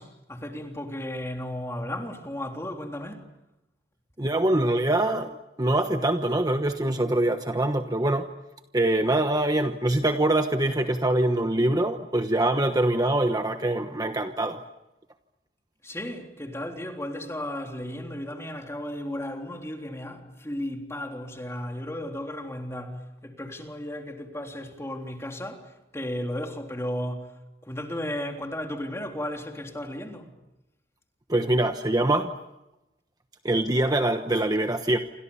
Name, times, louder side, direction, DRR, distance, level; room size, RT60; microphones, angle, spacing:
voice 1, 0.0-3.2 15.8-27.3 27.6-30.3, left 1 dB, 15° left, 3.5 m, -34 dB
voice 2, 4.2-5.3 5.6-8.3 8.7-14.6 31.3-32.3 33.4-35.0, right 1 dB, 20° right, 1.1 m, -24 dB
28.5 x 26.0 x 7.1 m
head